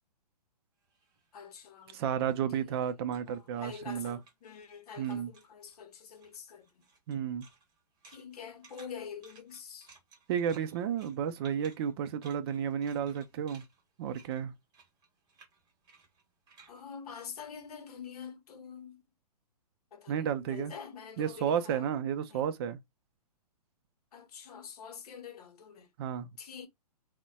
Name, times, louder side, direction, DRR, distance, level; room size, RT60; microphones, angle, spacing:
sound 1, 0.8-4.8 5.0-5.8 6.1-18.0, right 4 dB, 20° right, 1.1 m, -61 dB
voice 1, 1.3-2.2 2.5-2.8 3.3-6.8 8.0-9.9 16.7-19.0 19.9-21.9 22.3-22.5 24.1-25.9 26.4-26.7, left 7 dB, 65° left, 0.8 m, -46 dB
voice 2, 1.9-4.2 5.0-5.3 7.1-7.5 10.3-13.6 14.0-14.5 20.1-20.7 21.2-22.8 26.0-26.3, right 8 dB, 35° right, 0.4 m, -32 dB
3.9 x 2.1 x 2.2 m
hypercardioid pair, 140°, 21 cm